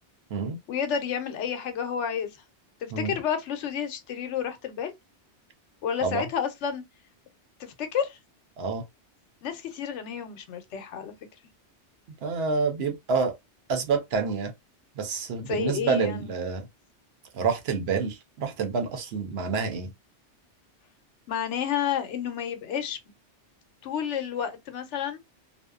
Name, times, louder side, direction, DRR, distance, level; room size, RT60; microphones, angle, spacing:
voice 1, 0.7-2.3 2.8-4.9 5.8-6.8 7.6-8.2 9.4-11.1 15.4-16.3 21.3-23.0 23.8-25.2, left 8 dB, 85° left, 0.9 m, -30 dB
voice 2, 12.2-13.3 13.7-14.5 15.0-16.7 17.3-19.9, right 5 dB, 65° right, 0.9 m, -28 dB
2.6 x 2.1 x 2.2 m
omnidirectional pair, 1.2 m